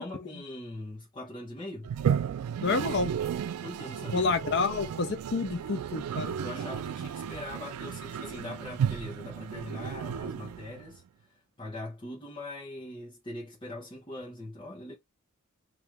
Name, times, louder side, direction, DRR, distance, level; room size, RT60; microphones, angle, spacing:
voice 1, 0.0-1.9 3.6-4.3 6.4-15.0, left 1 dB, 20° left, 0.9 m, -41 dB
Toilet flush, 1.8-11.0, right 8 dB, 85° right, 0.3 m, -33 dB
voice 2, 2.6-3.1 4.1-6.4, left 4 dB, 50° left, 0.6 m, -29 dB
3.2 x 2.6 x 3.4 m
head